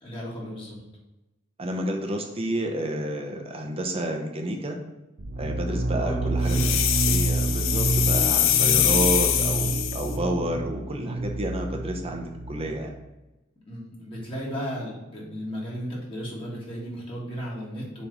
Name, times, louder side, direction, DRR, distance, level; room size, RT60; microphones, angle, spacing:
voice 1, 0.0-0.8 5.9-6.7 13.7-18.1, equal, 25° left, -5 dB, 1.9 m, -35 dB
voice 2, 1.6-4.8 5.4-6.7 7.1-12.9, right 1 dB, 30° right, 2 dB, 0.9 m, -30 dB
sound 1, 5.2-12.8, right 2 dB, 60° right, 0.7 m, -28 dB
sound 2, 6.5-10.1, left 10 dB, 70° left, 0.6 m, -23 dB
7.1 x 3.3 x 5.4 m, 1.0 s
head